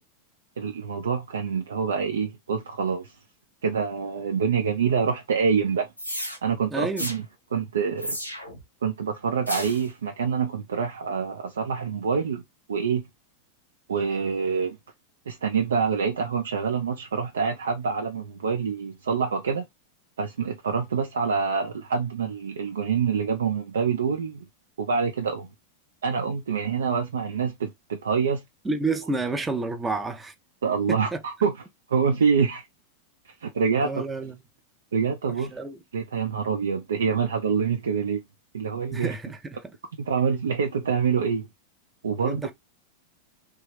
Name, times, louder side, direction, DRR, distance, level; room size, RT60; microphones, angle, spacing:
voice 1, 0.6-3.1 3.6-5.9 6.4-7.2 7.5-8.2 8.8-12.4 12.7-13.1 13.9-14.8 15.3-19.6 20.2-24.5 24.8-25.5 26.0-28.4 30.6-31.6 31.9-32.6 33.4-34.0 34.9-35.5 35.9-38.2 38.5-39.1 40.0-41.5 42.0-42.4, right 6 dB, 65° right, 0.5 m, -26 dB
sound 1, 6.0-6.4 7.0-7.2 8.0-8.6 9.5-9.9, equal, 85° left, 0.8 m, -32 dB
voice 2, 6.7-7.1 28.6-30.3 30.9-31.2 33.8-34.3 35.5-35.8 38.9-39.7 42.2-42.5, right 3 dB, 10° right, 0.5 m, -30 dB
3.1 x 2.2 x 3.2 m
figure-of-eight pair, 90°, 0 cm